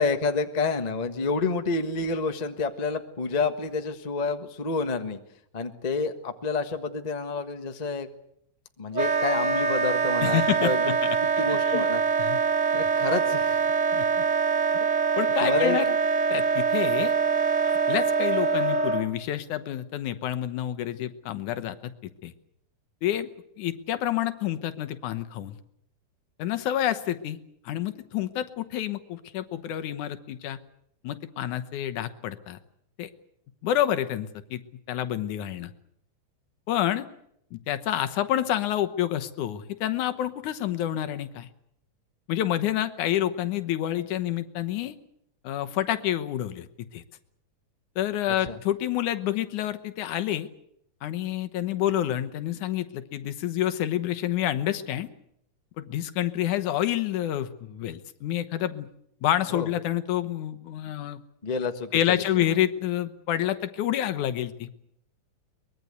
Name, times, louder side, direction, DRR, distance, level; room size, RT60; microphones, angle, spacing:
voice 1, 0.0-5.2 5.5-8.1 8.8-11.0 11.4-12.0 12.7-13.6 15.4-15.8 48.5-48.6 59.5-59.7 61.4-61.9 62.4-62.5, left 4 dB, 50° left, 7 dB, 0.4 m, -28 dB
Wind instrument woodwind instrument, 8.9-19.1, right 5 dB, 45° right, 0.9 m, -24 dB
voice 2, 10.2-11.2 11.5-11.9 12.2-12.4 13.9-14.2 14.7-14.8 15.2-15.9 16.3-17.1 17.6-22.3 23.0-23.3 23.6-25.6 26.4-27.4 27.7-30.6 31.0-32.6 33.0-33.1 33.6-34.6 34.9-35.7 36.7-37.1 37.5-41.5 42.3-45.0 45.4-47.0 48.0-50.5 51.0-55.1 55.8-58.9 59.2-61.2 61.9-64.7, left 12 dB, 75° left, 9 dB, 2.5 m, -28 dB
23.5 x 21.0 x 8.1 m, 0.73 s
omnidirectional pair, 3.6 m